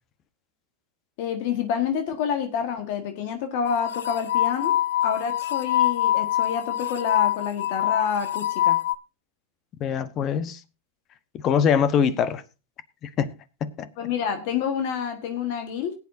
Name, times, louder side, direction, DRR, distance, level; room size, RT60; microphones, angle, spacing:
voice 1, 1.2-4.8 5.0-8.8 14.0-15.9, left 7 dB, 60° left, 1.5 m, -28 dB
sound 1, 3.6-9.0, left 12 dB, 80° left, 0.6 m, -24 dB
voice 2, 9.8-10.6 11.4-12.4 13.0-13.3 13.6-13.9, left 7 dB, 35° left, 1.1 m, -23 dB
19.5 x 8.5 x 2.7 m
hypercardioid pair, 120°, 0 cm